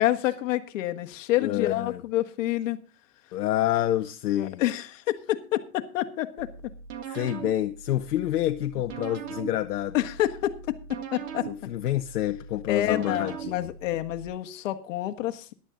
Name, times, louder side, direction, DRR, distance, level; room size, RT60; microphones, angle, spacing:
voice 1, 0.0-2.8 4.4-6.5 7.1-7.3 9.9-10.7 11.1-11.5 12.7-15.5, left 14 dB, 50° left, 1.5 m, -28 dB
voice 2, 1.4-2.0 3.3-4.6 7.1-9.9 11.5-13.7, left 13 dB, 65° left, 0.9 m, -28 dB
sound 1, 6.4-14.3, right 7 dB, 50° right, 2.0 m, -40 dB
14.0 x 11.0 x 3.8 m
hypercardioid pair, 150°, 49 cm